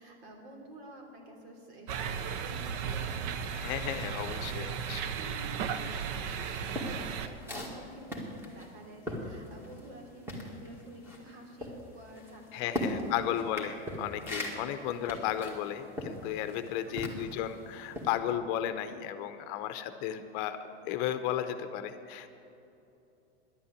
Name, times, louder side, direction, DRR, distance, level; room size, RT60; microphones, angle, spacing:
voice 1, 0.0-4.9 5.2-13.4 16.9-17.3, right 1 dB, 70° right, 0 dB, 3.3 m, -50 dB
sound 1, 1.9-7.3, right 7 dB, 50° right, 0.8 m, -35 dB
voice 2, 3.5-5.1 12.5-20.6 20.8-22.3, left 10 dB, 45° left, 9 dB, 0.7 m, -34 dB
sound 2, 6.2-10.0 10.2-17.5 17.9-18.2, left 1 dB, 5° right, 1.9 m, -39 dB
11.5 x 8.6 x 8.1 m, 2.8 s
supercardioid pair, 140°, 33 cm